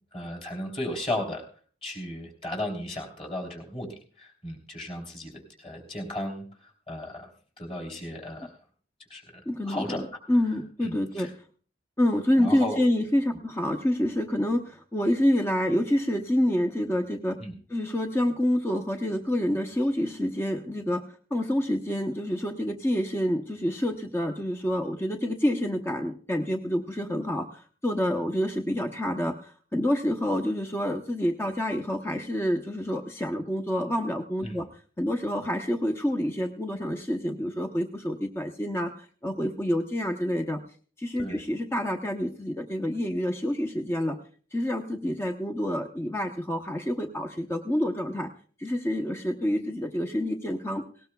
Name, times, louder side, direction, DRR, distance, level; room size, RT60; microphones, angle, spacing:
voice 1, 0.1-1.4 1.8-3.9 4.2-5.3 5.6-6.4 6.9-7.3 7.6-8.5 9.1-9.2 9.7-10.0 10.8-11.3 12.4-12.8 17.4-17.5 34.4-34.6 41.2-41.4, left 1 dB, 30° left, 0 dB, 3.3 m, -34 dB
voice 2, 9.5-11.3 12.0-17.4 17.7-21.0 21.3-34.7 35.0-40.6 41.0-44.2 44.5-48.3 48.6-50.8, left 1 dB, 15° left, 5 dB, 0.7 m, -27 dB
18.5 x 18.5 x 2.3 m, 0.42 s
head